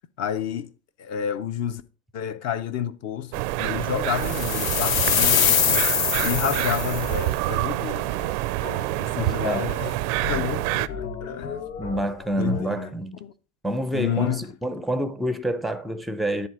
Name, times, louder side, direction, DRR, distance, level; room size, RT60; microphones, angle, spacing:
voice 1, 0.2-0.7 1.0-1.8 2.1-5.9 6.2-8.3 9.0-10.0 10.3-11.6 12.3-12.9 13.2-13.3 13.9-14.5, left 9 dB, 40° left, 0.7 m, -30 dB
sound 1, 3.3-10.9, right 18 dB, 60° right, 0.5 m, -27 dB
sound 2, 4.2-7.2, left 9 dB, 90° left, 0.7 m, -23 dB
sound 3, 6.2-12.6, left 6 dB, 55° left, 2.3 m, -38 dB
voice 2, 9.2-9.7 11.8-13.2 13.6-16.5, right 1 dB, ahead, 0.5 m, -28 dB
10.5 x 3.7 x 4.7 m
hypercardioid pair, 90°, 40 cm